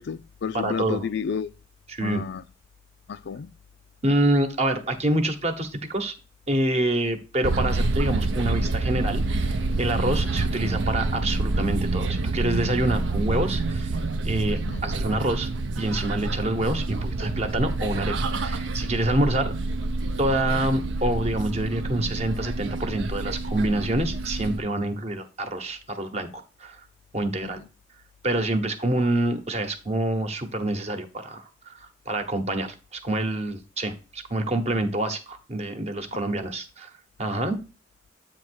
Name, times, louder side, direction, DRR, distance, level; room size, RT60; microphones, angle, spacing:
voice 1, 0.0-1.5 2.0-2.4 3.1-3.5 14.7-14.9 27.4-27.7 36.1-36.3, left 6 dB, 65° left, 0.4 m, -31 dB
voice 2, 0.5-1.0 1.9-2.2 4.0-6.1 6.5-13.9 14.2-15.5 15.8-18.1 18.4-19.5 20.2-26.8 27.1-27.6 28.2-36.9 37.2-37.6, right 1 dB, 35° right, 1.0 m, -27 dB
sound 1, 7.4-24.6, right 2 dB, 80° right, 0.6 m, -27 dB
8.5 x 3.0 x 6.2 m
head